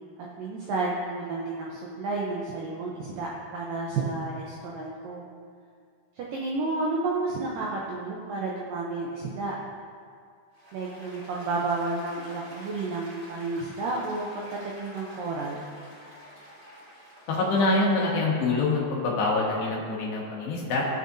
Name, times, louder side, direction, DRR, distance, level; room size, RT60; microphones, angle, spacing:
voice 1, 0.4-5.2 6.2-9.5 10.7-15.7, right 3 dB, 80° right, -4 dB, 2.0 m, -31 dB
Applause, 10.5-18.0, equal, 25° right, 2.0 m, -48 dB
voice 2, 17.3-20.8, left 3 dB, 75° left, -4 dB, 3.6 m, -25 dB
19.5 x 6.6 x 2.7 m, 2.2 s
omnidirectional pair, 5.0 m